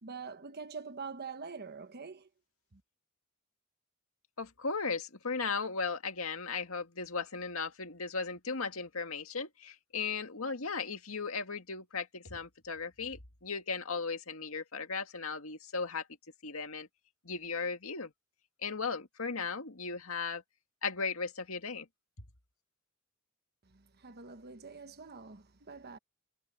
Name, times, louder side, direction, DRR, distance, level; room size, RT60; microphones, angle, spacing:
voice 1, 0.0-2.3 2.7-2.8 23.6-26.0, right 5 dB, 45° right, 1.2 m, -45 dB
voice 2, 4.4-16.1 16.4-16.9 17.2-18.1 18.6-20.4 20.8-21.9, left 4 dB, 70° left, 2.1 m, -36 dB
head